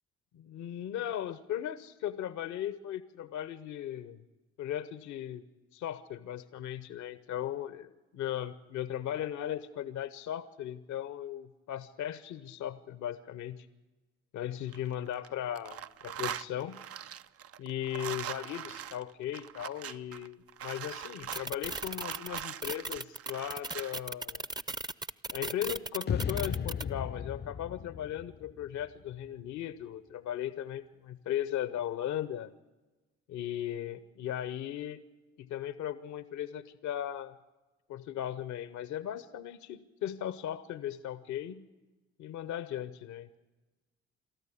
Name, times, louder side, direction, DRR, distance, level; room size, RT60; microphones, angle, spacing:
voice 1, 0.3-4.2 4.6-5.4 5.7-13.7 14.3-16.8 17.6-24.4 25.3-32.5 33.3-35.0 35.4-37.3 37.9-41.7 42.2-43.4, left 11 dB, 70° left, 15 dB, 1.0 m, -37 dB
sound 1, 14.5-15.3 15.6-24.0, right 10 dB, 50° right, 0.6 m, -42 dB
sound 2, 21.3-26.8, right 2 dB, 15° right, 0.7 m, -36 dB
sound 3, 26.1-29.3, left 7 dB, 35° left, 0.6 m, -36 dB
23.0 x 13.5 x 8.5 m, 1.1 s
hypercardioid pair, 45°, 31 cm